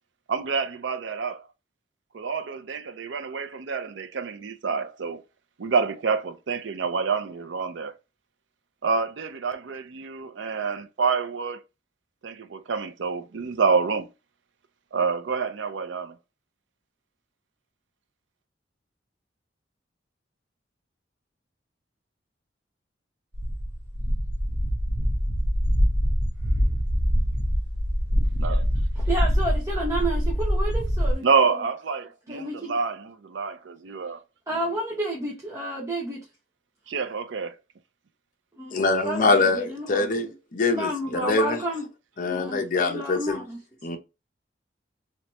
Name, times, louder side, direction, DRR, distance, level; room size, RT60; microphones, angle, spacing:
voice 1, 0.3-1.5 2.1-5.2 5.6-8.0 8.8-11.6 12.2-14.1 14.9-16.2 28.4-28.6 31.2-34.2 36.9-37.5, right 5 dB, 85° right, 0.5 m, -27 dB
sound 1, 23.3-31.1, equal, 65° right, 1.1 m, -24 dB
voice 2, 29.0-31.5 32.3-32.8 34.5-36.2 38.6-40.3 40.7-41.9 42.2-43.6, right 1 dB, 15° right, 0.8 m, -31 dB
voice 3, 38.7-41.6 42.2-43.4 43.8-44.0, left 3 dB, 50° left, 0.8 m, -24 dB
3.2 x 2.9 x 3.0 m
head